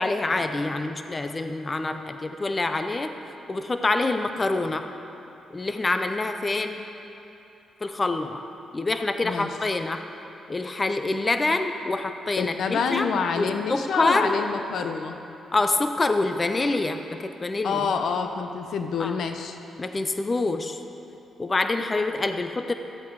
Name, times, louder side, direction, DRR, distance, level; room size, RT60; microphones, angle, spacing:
voice 1, 0.0-3.1 3.5-4.9 5.5-6.8 7.8-8.4 8.7-10.0 10.5-13.1 13.4-14.4 15.5-17.9 19.0-19.2 19.8-20.8 21.4-22.7, left 2 dB, 30° left, 7 dB, 0.6 m, -26 dB
voice 2, 12.4-15.2 17.6-19.6, left 5 dB, 75° left, 7 dB, 0.7 m, -27 dB
14.0 x 8.4 x 4.8 m, 2.9 s
cardioid pair, 75°, 0 cm